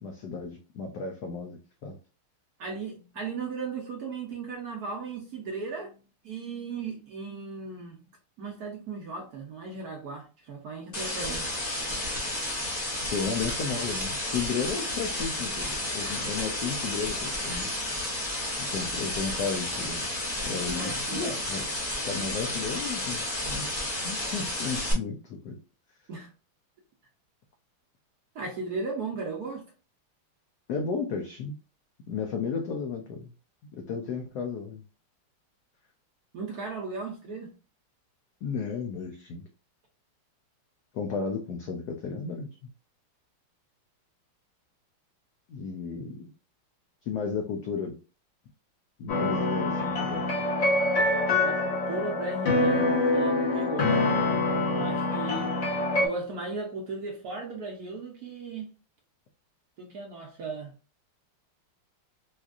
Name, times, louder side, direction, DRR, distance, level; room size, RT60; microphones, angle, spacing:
voice 1, 0.0-2.0 13.1-17.7 18.6-20.1 20.4-21.7 22.0-23.7 24.0-25.6 30.7-31.6 32.1-33.3 33.7-34.8 38.4-39.5 40.9-42.5 45.5-46.3 47.0-48.0 49.0-50.3, left 5 dB, 90° left, 0.8 m, -33 dB
voice 2, 2.6-6.0 6.2-8.0 8.4-11.5 20.6-21.3 26.1-26.3 28.3-29.6 36.3-37.5 51.4-53.9 54.7-55.5 56.0-58.7 59.8-60.7, right 4 dB, 60° right, 1.0 m, -36 dB
sound 1, 10.9-24.9, left 1 dB, 35° left, 0.7 m, -32 dB
sound 2, 49.1-56.1, left 2 dB, 60° left, 2.1 m, -25 dB
4.3 x 2.4 x 2.4 m
omnidirectional pair, 2.4 m